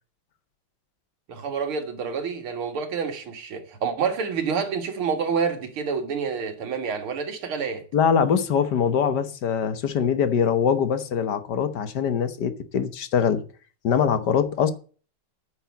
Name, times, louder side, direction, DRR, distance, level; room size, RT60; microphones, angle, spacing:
voice 1, 1.3-7.8, right 6 dB, 75° right, 2.7 m, -28 dB
voice 2, 7.9-13.4 13.8-14.7, left 7 dB, 55° left, 1.5 m, -23 dB
9.8 x 6.3 x 8.2 m
omnidirectional pair, 2.4 m